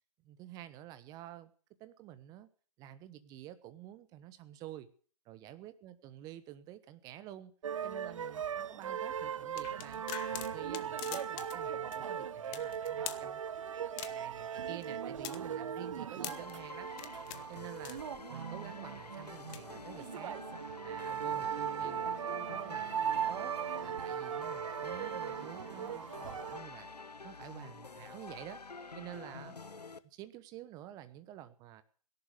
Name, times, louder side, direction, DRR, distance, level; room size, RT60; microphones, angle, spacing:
voice 1, 0.2-1.5 1.8-2.5 2.8-4.9 5.2-7.5 7.8-13.4 13.7-16.9 17.5-18.0 18.3-20.4 20.8-23.5 23.8-26.9 27.2-28.6 28.9-29.6 30.0-31.8, right 13 dB, 20° right, 13 dB, 1.1 m, -50 dB
sound 1, 7.6-26.6, right 8 dB, 55° right, 0.8 m, -38 dB
sound 2, 9.6-11.6 11.9-12.0 12.5-13.3 14.0-14.4 14.8-16.5 16.9-17.4 17.8-18.4 19.3-19.6, left 15 dB, 20° left, 0.9 m, -44 dB
sound 3, 16.3-30.0, left 4 dB, 85° left, 1.2 m, -48 dB
17.5 x 11.5 x 6.6 m, 0.43 s
figure-of-eight pair, 135°, 20 cm